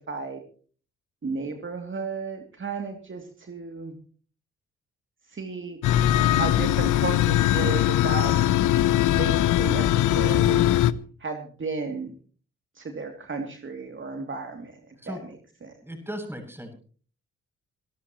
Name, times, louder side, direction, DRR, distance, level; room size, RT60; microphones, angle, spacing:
voice 1, 0.1-0.4 1.2-3.9 5.3-5.8 6.3-8.3 9.2-10.8 11.2-12.1 12.7-15.7, right 4 dB, 40° right, 4 dB, 2.8 m, -34 dB
sound 1, 5.8-10.9, left 13 dB, 70° left, 0.9 m, -21 dB
voice 2, 15.8-16.7, equal, 5° right, 4 dB, 7.6 m, -36 dB
26.5 x 13.0 x 3.1 m, 0.42 s
hypercardioid pair, 50°, 31 cm